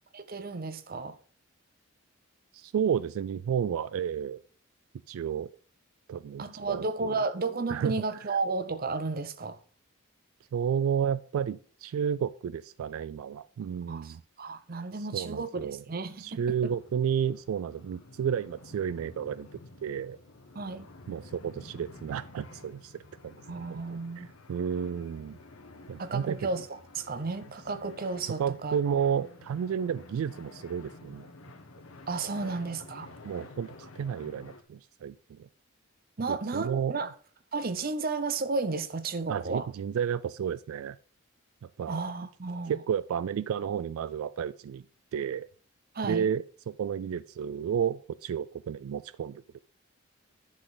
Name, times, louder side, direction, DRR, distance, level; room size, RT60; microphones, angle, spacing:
voice 1, 0.1-1.2 6.4-9.6 13.9-16.7 20.5-20.9 23.5-24.3 26.0-28.8 32.1-33.1 36.2-37.1 37.5-39.7 41.9-42.8 45.9-46.3, right 3 dB, 45° right, 0.7 m, -33 dB
voice 2, 2.5-4.4 5.1-5.5 6.1-7.2 7.7-7.9 10.5-14.2 15.0-15.8 16.2-20.2 21.1-22.9 23.2-25.4 25.9-26.4 28.4-31.3 32.4-32.5 33.2-35.5 36.3-37.0 39.3-41.0 41.8-42.0 42.7-44.8 45.1-45.5 46.0-49.4, right 8 dB, 85° right, 0.3 m, -32 dB
sound 1, 16.0-34.6, left 2 dB, 85° left, 1.1 m, -51 dB
10.5 x 6.2 x 3.9 m
head